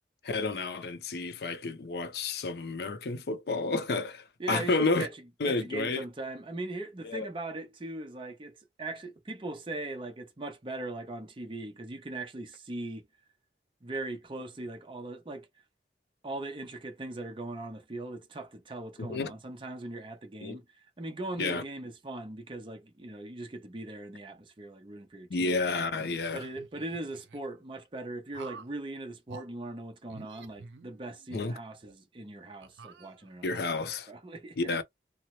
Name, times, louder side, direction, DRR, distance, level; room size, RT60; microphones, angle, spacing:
voice 1, 0.2-5.1 5.4-6.0 7.0-7.3 19.0-19.3 20.4-20.6 21.4-21.6 25.3-26.4 31.3-31.6 33.4-34.1 34.6-34.8, left 3 dB, 65° left, 0.5 m, -30 dB
voice 2, 4.4-5.2 5.5-13.0 13.8-15.5 16.2-25.6 26.3-33.5 34.1-34.8, right 2 dB, 30° right, 0.5 m, -40 dB
sound 1, 25.9-27.4 28.3-28.8 29.3-29.5 30.1-31.3 31.8-31.9 32.6-33.5, right 4 dB, 80° right, 0.4 m, -49 dB
2.9 x 2.0 x 3.0 m
head